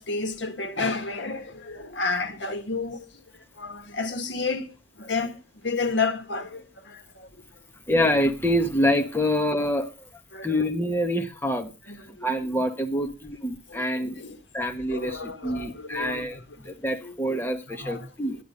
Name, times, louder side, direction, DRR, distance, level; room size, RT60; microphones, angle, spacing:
voice 1, 0.0-7.3 10.3-10.6 11.9-12.3 13.7-14.4 14.9-16.7 17.0-18.1, left 4 dB, 85° left, 1.6 m, -32 dB
voice 2, 7.9-10.1 10.4-11.7 12.1-14.2 14.5-16.4 16.6-18.4, equal, 10° left, 1.3 m, -26 dB
11.5 x 10.0 x 5.2 m
head